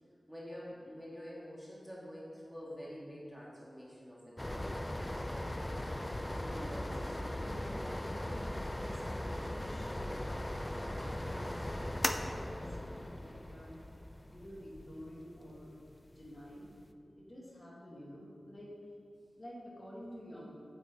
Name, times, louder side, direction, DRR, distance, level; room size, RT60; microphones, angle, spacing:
voice 1, 0.3-4.8, equal, ahead, -6 dB, 2.0 m, -47 dB
sound 1, 4.4-16.8, left 1 dB, 20° left, 0.5 m, -39 dB
voice 2, 6.4-13.7 14.3-15.8 16.1-16.7 17.1-18.7 19.4-20.5, equal, 35° left, -5 dB, 2.3 m, -50 dB
8.8 x 8.1 x 4.1 m, 2.2 s
wide cardioid pair, 70°, 0 cm